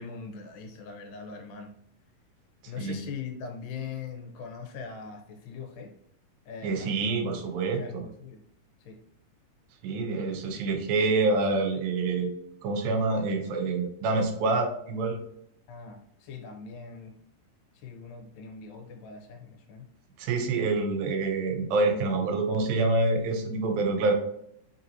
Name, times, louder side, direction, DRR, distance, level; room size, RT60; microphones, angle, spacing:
voice 1, 0.0-1.7 2.7-5.9 6.5-7.4 7.7-8.4 8.9-9.0 15.7-17.2 17.7-19.9, left 5 dB, 90° left, 3 dB, 2.4 m, -41 dB
voice 2, 6.6-8.0 9.8-12.3 12.6-15.2 20.2-24.1, right 3 dB, 90° right, 4 dB, 2.5 m, -27 dB
5.6 x 2.7 x 2.8 m, 0.75 s
omnidirectional pair, 4.0 m